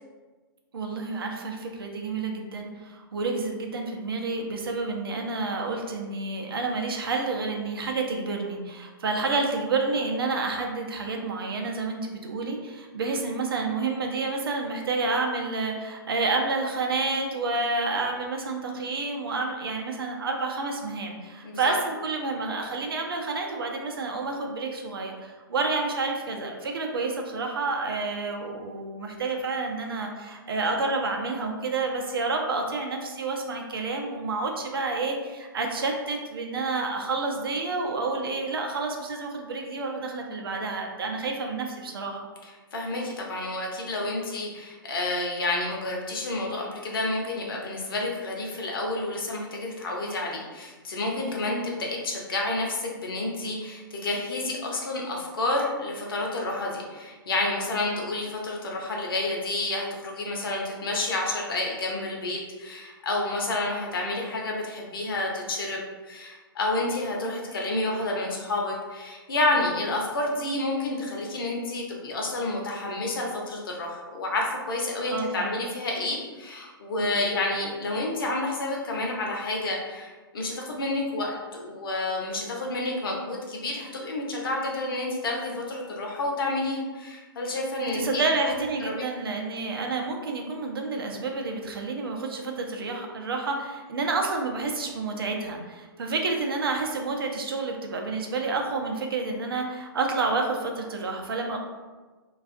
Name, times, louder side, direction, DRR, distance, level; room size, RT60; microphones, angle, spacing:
voice 1, 0.7-42.3 75.0-75.6 77.0-77.3 87.9-101.6, right 3 dB, 75° right, 2 dB, 0.5 m, -29 dB
voice 2, 21.4-21.8 42.4-88.5 88.8-89.0, left 2 dB, 70° left, -1 dB, 0.7 m, -30 dB
2.3 x 2.3 x 2.5 m, 1.3 s
figure-of-eight pair, 120°, 12 cm